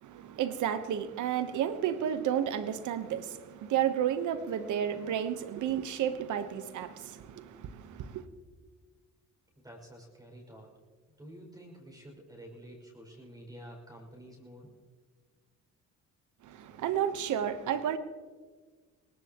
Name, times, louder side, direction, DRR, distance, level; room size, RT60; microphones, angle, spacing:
voice 1, 0.0-8.2 16.4-18.0, right 9 dB, 75° right, 1.2 m, -32 dB
voice 2, 9.6-10.7 11.2-14.7, equal, 15° right, 6.1 m, -49 dB
22.5 x 18.5 x 3.0 m
cardioid pair, 90°, 30 cm